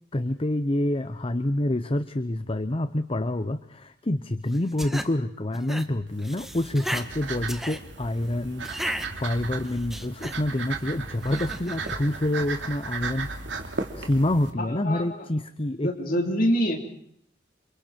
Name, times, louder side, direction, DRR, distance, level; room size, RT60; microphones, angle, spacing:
voice 1, 0.1-8.7 9.1-13.3 13.9-15.9, left 1 dB, 30° left, 11 dB, 0.9 m, -27 dB
sound 1, 4.5-5.1 5.5-5.9 6.2-7.1 7.5-7.8 8.6-9.1 9.7-10.4 11.3-11.9, equal, ahead, 1.5 m, -34 dB
sound 2, 6.1-14.5, right 4 dB, 75° right, 2.8 m, -36 dB
voice 2, 14.6-15.3 15.8-16.8, equal, 50° left, 1 dB, 4.0 m, -26 dB
29.0 x 28.0 x 4.6 m, 0.67 s
head